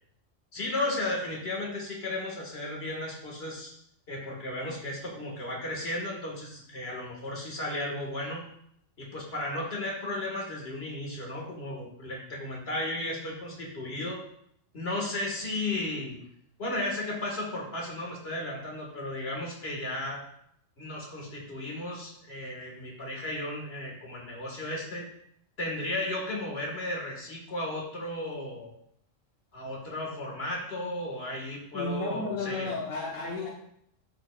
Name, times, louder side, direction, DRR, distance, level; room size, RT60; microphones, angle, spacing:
voice 1, 0.5-3.7 4.1-8.4 9.0-14.2 14.7-16.2 16.6-20.2 20.8-25.0 25.6-28.7 29.5-32.7, left 1 dB, 55° left, -2 dB, 2.1 m, -34 dB
voice 2, 31.7-33.5, left 3 dB, 80° left, -2 dB, 1.3 m, -33 dB
12.0 x 4.9 x 2.4 m, 0.70 s
omnidirectional pair, 1.3 m